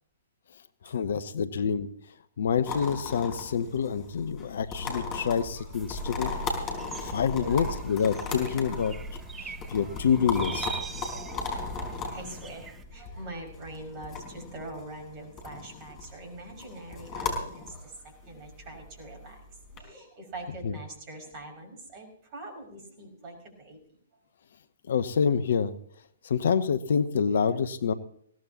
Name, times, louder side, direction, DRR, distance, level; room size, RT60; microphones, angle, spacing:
voice 1, 0.8-1.9 2.4-6.3 7.0-9.0 9.4-10.7 20.6-20.8 24.9-25.7 26.2-27.9, left 7 dB, 55° left, 14 dB, 0.9 m, -27 dB
sound 1, 2.7-19.8, left 3 dB, 25° left, 4.8 m, -37 dB
sound 2, 5.7-12.8, right 6 dB, 15° right, 0.8 m, -44 dB
voice 2, 7.4-7.7 9.6-10.0 11.1-11.6 12.1-19.4 19.7-23.8, right 2 dB, 30° right, 2 dB, 6.0 m, -44 dB
21.5 x 17.5 x 2.9 m, 0.65 s
figure-of-eight pair, 120°, 0 cm